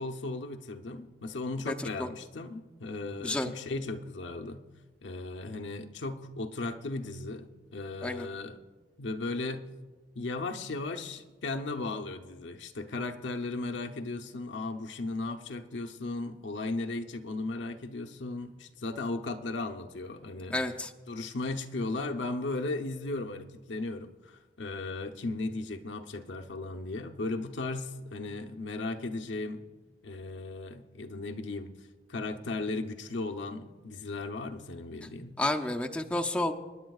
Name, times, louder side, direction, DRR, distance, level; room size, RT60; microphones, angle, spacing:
voice 1, 0.0-4.6 5.0-8.6 9.0-9.6 10.2-20.6 21.1-29.6 30.0-31.7 32.1-35.4, left 2 dB, 80° left, 5 dB, 0.8 m, -36 dB
voice 2, 1.7-2.1 3.2-3.5 8.0-8.3 20.5-20.9 35.4-36.5, left 1 dB, 5° left, 3 dB, 0.5 m, -30 dB
26.5 x 10.0 x 2.4 m, 1.3 s
head